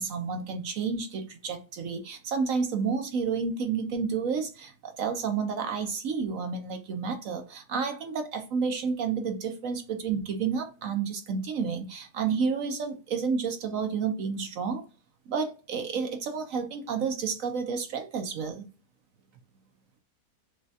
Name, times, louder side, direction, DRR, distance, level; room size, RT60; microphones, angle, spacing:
voice 1, 0.0-14.8 15.3-18.6, right 5 dB, 65° right, 1.0 m, -30 dB
6.3 x 2.3 x 2.7 m
omnidirectional pair, 1.7 m